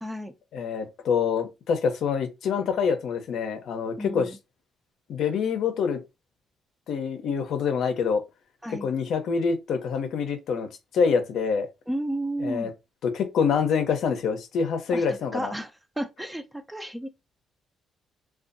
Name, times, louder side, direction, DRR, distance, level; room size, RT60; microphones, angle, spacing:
voice 1, 0.0-0.3 4.0-4.4 8.6-8.9 11.9-12.7 14.9-17.1, right 1 dB, 5° right, 0.4 m, -33 dB
voice 2, 0.5-4.3 5.1-6.0 6.9-8.2 8.8-10.7 10.9-11.7 12.4-12.7 13.0-15.5, left 6 dB, 75° left, 0.5 m, -26 dB
2.5 x 2.3 x 2.5 m
cardioid pair, 90°, 0 cm